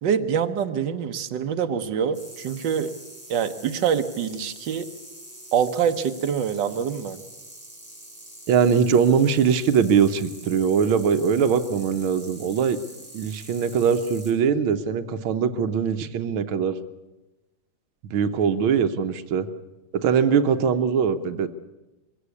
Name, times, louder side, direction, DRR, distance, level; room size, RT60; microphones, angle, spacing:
voice 1, 0.0-2.9 3.3-4.9 5.5-7.2, right 7 dB, 65° right, 6 dB, 1.7 m, -25 dB
sound 1, 2.1-14.3, right 1 dB, 5° right, 5.9 m, -45 dB
voice 2, 8.5-12.8 13.1-16.8 18.1-19.5 19.9-21.5, right 7 dB, 90° right, 10 dB, 1.7 m, -21 dB
22.5 x 16.5 x 8.4 m, 1.1 s
omnidirectional pair, 2.2 m